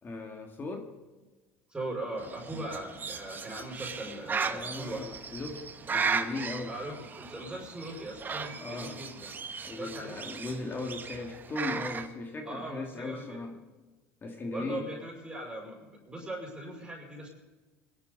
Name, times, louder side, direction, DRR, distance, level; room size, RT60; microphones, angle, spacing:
voice 1, 0.0-0.9 2.5-2.8 4.4-6.8 8.6-9.0 9.6-13.6 14.2-14.9, left 3 dB, 30° left, 3 dB, 2.3 m, -38 dB
voice 2, 1.7-5.1 6.7-9.4 9.8-10.2 12.4-13.5 14.5-17.3, right 1 dB, 15° right, -4 dB, 5.8 m, -40 dB
Bird, 2.2-12.1, right 5 dB, 30° right, 1.5 m, -36 dB
22.0 x 12.0 x 4.1 m, 1.3 s
hypercardioid pair, 85°, 7 cm